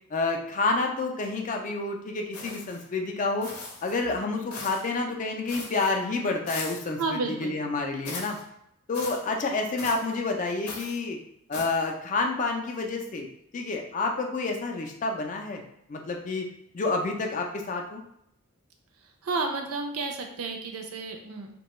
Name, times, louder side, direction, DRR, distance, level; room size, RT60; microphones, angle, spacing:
voice 1, 0.1-3.5 3.8-8.4 8.9-11.2 11.5-13.3 13.5-15.6 15.9-16.5 16.7-18.0, left 3 dB, 35° left, 2 dB, 0.3 m, -29 dB
sound 1, 2.3-2.9 3.4-4.0 4.5-4.9 5.5-5.9 6.5-6.9 8.0-8.4 8.9-9.2 9.8-10.1 10.7-11.0 11.5-11.9, left 3 dB, 85° left, 0.7 m, -39 dB
voice 2, 7.0-7.5 19.2-21.5, right 3 dB, 75° right, 4 dB, 0.5 m, -31 dB
2.8 x 2.2 x 3.0 m, 0.75 s
head